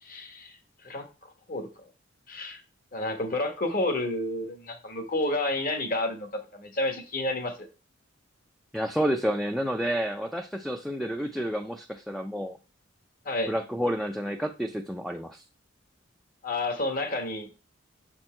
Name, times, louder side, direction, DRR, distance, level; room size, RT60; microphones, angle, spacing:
voice 1, 0.0-1.7 2.3-2.6 2.9-7.5 13.2-13.5 16.4-17.5, left 2 dB, 50° left, 6 dB, 1.3 m, -30 dB
voice 2, 8.7-12.6 13.5-15.4, equal, ahead, 5 dB, 0.4 m, -30 dB
6.7 x 4.5 x 4.3 m, 0.32 s
head